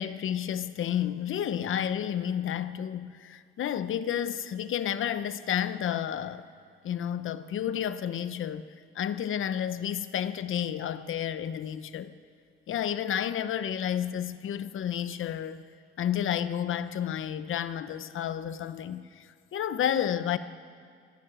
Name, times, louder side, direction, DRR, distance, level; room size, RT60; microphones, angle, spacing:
voice 1, 0.0-6.5 6.8-12.1 12.7-15.6 16.0-20.4, left 9 dB, 80° left, 13 dB, 0.8 m, -31 dB
25.0 x 11.5 x 8.9 m, 2.2 s
wide cardioid pair, 135°, 21 cm